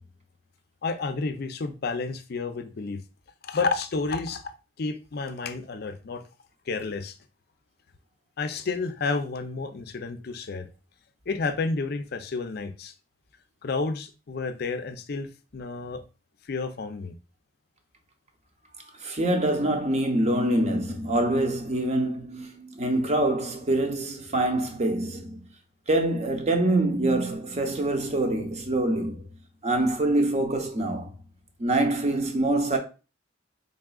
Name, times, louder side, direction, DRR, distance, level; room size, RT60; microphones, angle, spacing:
voice 1, 0.8-3.0 3.4-4.5 4.8-6.2 6.7-7.2 8.4-10.7 11.3-12.9 13.6-16.0 16.5-17.1, left 4 dB, 55° left, 0.5 m, -30 dB
voice 2, 19.0-25.4 25.9-29.3 29.6-31.1 31.6-32.8, right 1 dB, 35° right, 0.7 m, -25 dB
4.0 x 3.6 x 2.3 m
head